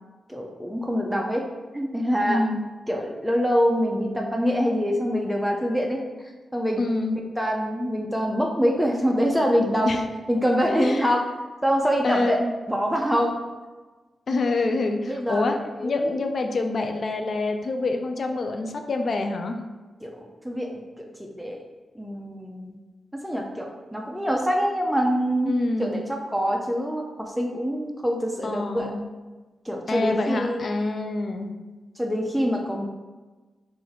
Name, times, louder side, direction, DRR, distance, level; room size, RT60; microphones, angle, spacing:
voice 1, 0.3-1.4 1.7-2.4 2.9-6.0 6.5-6.8 7.4-9.9 10.3-11.3 11.6-12.4 12.7-13.4 15.1-15.5 15.8-16.1 20.0-20.1 20.4-20.8 21.2-21.6 22.0-22.8 23.2-25.5 25.8-28.9 29.6-30.6 32.0-32.9, equal, ahead, 0 dB, 0.5 m, -25 dB
voice 2, 2.3-2.6 6.8-7.2 9.8-10.0 10.7-11.1 12.0-12.5 14.3-15.6 15.8-19.6 25.5-26.0 28.4-29.0 29.9-31.5, left 2 dB, 60° left, 5 dB, 0.3 m, -26 dB
2.8 x 2.5 x 3.9 m, 1.3 s
supercardioid pair, 50°, 0 cm